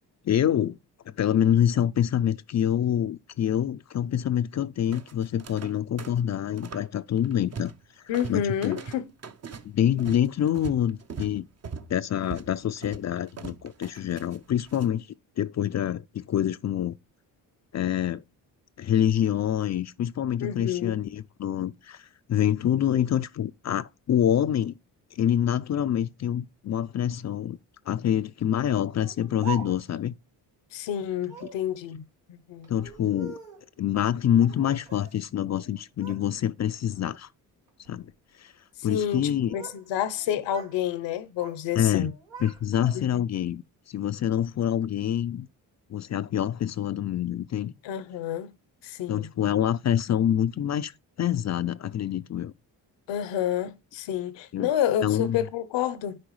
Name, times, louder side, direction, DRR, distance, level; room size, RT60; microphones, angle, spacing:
voice 1, 0.2-0.8 1.1-7.7 8.3-8.8 9.6-11.5 11.9-15.1 15.4-17.0 17.7-18.2 18.8-24.7 25.1-27.6 27.9-30.1 32.7-33.4 33.8-37.3 37.9-38.1 38.4-38.5 38.8-39.6 41.8-42.1 42.4-45.5 45.9-47.7 49.1-50.9 51.2-52.5 54.5-54.7 55.0-55.4, left 10 dB, 40° left, 0.4 m, -26 dB
sound 1, 4.9-5.7 6.0-6.9 7.2-7.8 8.1-14.9, right 5 dB, 35° right, 0.8 m, -41 dB
voice 2, 8.1-9.1 20.4-20.9 30.7-32.0 32.3-32.7 38.8-39.2 39.5-42.1 42.9-43.2 47.8-48.5 48.8-49.3 53.1-56.2, left 10 dB, 75° left, 0.9 m, -29 dB
Speech, 29.0-30.1 31.2-31.7 32.6-33.7 34.4-35.2 35.5-36.2 36.6-37.0 37.7-38.0 39.1-39.8 40.1-40.8 41.1-41.6 42.0-43.2, right 7 dB, 85° right, 2.2 m, -43 dB
10.5 x 4.6 x 3.1 m
supercardioid pair, 55°, 43 cm